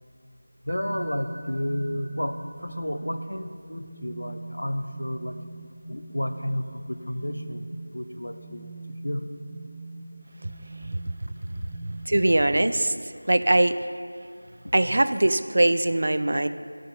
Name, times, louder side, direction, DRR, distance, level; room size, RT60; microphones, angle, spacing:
voice 1, 0.7-5.4 5.9-8.6 9.0-9.3 12.1-12.2 13.5-13.6 14.6-15.0, equal, 70° left, 8 dB, 0.7 m, -32 dB
sound 1, 0.7-12.4, right 2 dB, 10° right, 0.7 m, -41 dB
voice 2, 12.1-12.9 13.3-13.7 14.7-16.5, right 1 dB, 45° right, 11 dB, 0.4 m, -21 dB
13.5 x 5.3 x 6.4 m, 2.2 s
figure-of-eight pair, 170°, 0 cm